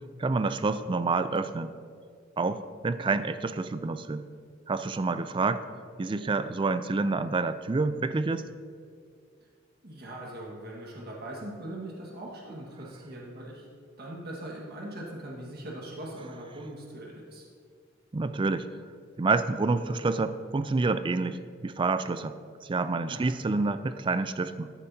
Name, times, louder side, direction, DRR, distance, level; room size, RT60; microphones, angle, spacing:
voice 1, 0.2-1.7 2.4-4.3 4.7-5.6 6.0-8.4 18.1-18.7 19.2-22.4 22.6-24.7, right 3 dB, 25° right, 12 dB, 0.3 m, -28 dB
voice 2, 9.8-13.6 14.0-17.4 23.1-23.6, right 1 dB, 50° right, -2 dB, 1.6 m, -41 dB
14.5 x 9.9 x 2.8 m, 2.1 s
head